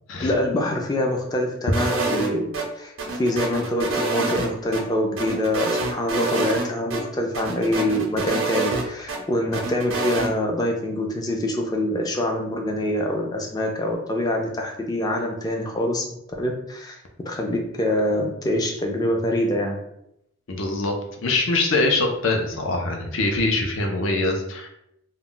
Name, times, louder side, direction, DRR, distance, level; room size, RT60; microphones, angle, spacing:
voice 1, 0.2-2.9 3.2-16.0 16.4-19.8, left 1 dB, 20° left, 1 dB, 0.3 m, -25 dB
sound 1, 1.7-2.7 3.0-4.8 5.2-6.7 6.9-7.0 7.3-9.2 9.5-10.3, right 3 dB, 90° right, 0.6 m, -26 dB
voice 2, 20.5-20.9 21.2-24.7, left 2 dB, 75° left, 2 dB, 0.5 m, -23 dB
2.2 x 2.1 x 3.7 m, 0.78 s
head